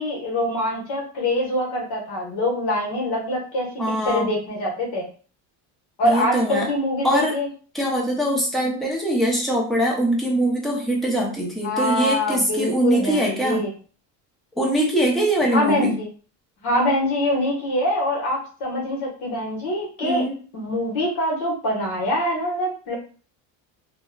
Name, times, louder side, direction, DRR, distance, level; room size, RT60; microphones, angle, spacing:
voice 1, 0.0-3.7 4.0-5.1 6.0-7.5 11.6-13.7 15.5-16.1 16.6-20.2 20.5-22.9, left 1 dB, 55° left, -2 dB, 1.3 m, -24 dB
voice 2, 3.8-4.3 6.0-6.7 7.0-7.3 7.7-13.7 14.6-16.0 20.0-20.4, right 1 dB, ahead, -3 dB, 0.6 m, -22 dB
3.0 x 2.2 x 2.3 m, 0.40 s
cardioid pair, 135°, 45 cm